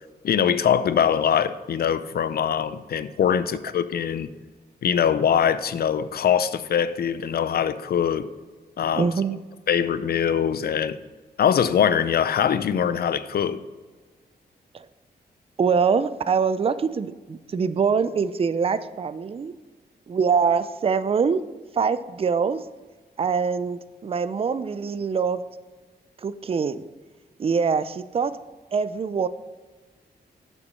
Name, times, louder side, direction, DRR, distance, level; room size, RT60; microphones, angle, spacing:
voice 1, 0.2-4.3 4.8-8.3 8.8-9.1 9.7-11.0 11.4-13.6, left 8 dB, 65° left, 14 dB, 0.5 m, -22 dB
voice 2, 9.0-9.4 14.7-14.9 15.6-19.5 20.1-21.4 21.7-22.6 23.2-25.4 26.2-26.8 27.4-28.3 28.7-29.3, right 6 dB, 35° right, 14 dB, 0.4 m, -24 dB
7.9 x 5.9 x 5.5 m, 1.4 s
wide cardioid pair, 105°, 17 cm